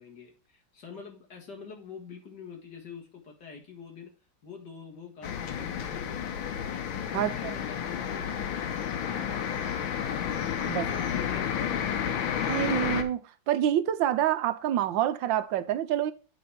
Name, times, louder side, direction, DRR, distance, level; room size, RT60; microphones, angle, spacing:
voice 1, 0.0-4.1 4.4-6.3 7.1-10.2 10.6-11.9, left 6 dB, 60° left, 2.4 m, -45 dB
sound 1, 5.2-13.0, left 8 dB, 90° left, 1.7 m, -31 dB
voice 2, 7.1-7.5 10.7-10.8 12.5-13.2 13.5-16.1, right 11 dB, 80° right, 1.4 m, -27 dB
8.3 x 4.1 x 5.8 m
omnidirectional pair, 2.0 m